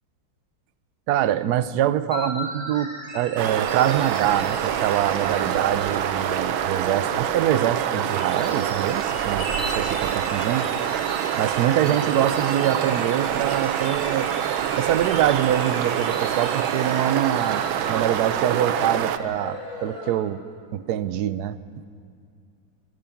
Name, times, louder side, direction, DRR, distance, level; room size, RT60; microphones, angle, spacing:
voice 1, 1.1-10.7 11.4-14.3 14.8-17.6 17.9-20.4 20.7-21.6, right 11 dB, 65° right, 14 dB, 1.0 m, -24 dB
sound 1, 2.1-20.2, equal, 20° left, 5.1 m, -37 dB
sound 2, 3.4-19.2, right 10 dB, 80° right, 1.6 m, -26 dB
26.0 x 14.5 x 7.1 m, 2.4 s
omnidirectional pair, 2.2 m